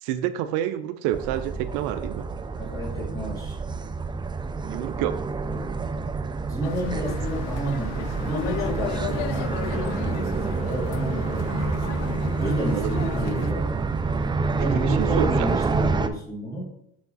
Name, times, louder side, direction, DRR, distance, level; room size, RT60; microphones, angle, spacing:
voice 1, 0.0-2.3 4.7-5.2 12.6-12.9 14.6-15.3, right 12 dB, 75° right, 12 dB, 0.5 m, -28 dB
sound 1, 1.1-16.1, right 4 dB, 15° right, 0.4 m, -28 dB
voice 2, 2.6-3.6 5.5-5.7 6.5-11.7 12.4-13.8 14.6-16.7, right 1 dB, 10° left, -3 dB, 2.8 m, -31 dB
sound 2, 6.6-13.5, left 11 dB, 85° left, 0.6 m, -34 dB
6.5 x 4.9 x 4.0 m, 0.75 s
supercardioid pair, 95°, 32 cm